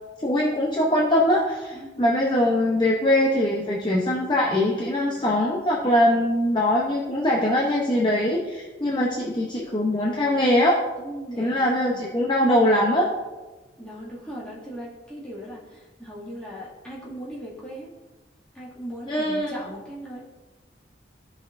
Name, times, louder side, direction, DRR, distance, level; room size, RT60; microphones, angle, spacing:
voice 1, 0.2-10.8 11.4-13.0 19.1-19.5, left 1 dB, 25° left, -2 dB, 0.7 m, -22 dB
voice 2, 1.7-2.7 5.0-5.3 11.0-12.0 13.8-17.9 18.5-20.2, equal, 5° left, -8 dB, 2.1 m, -39 dB
14.0 x 5.8 x 2.6 m, 1.2 s
head